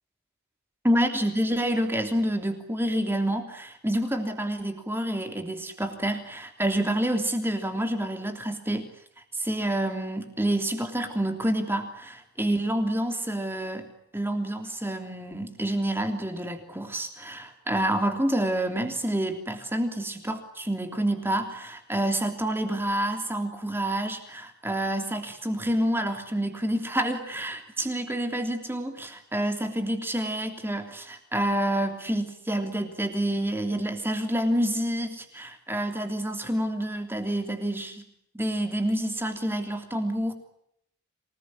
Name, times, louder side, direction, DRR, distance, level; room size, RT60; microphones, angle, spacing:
voice 1, 0.8-8.9 9.3-13.9 14.1-38.0 38.3-40.3, right 1 dB, 10° right, 5 dB, 3.2 m, -28 dB
27.0 x 19.5 x 9.8 m, 0.74 s
head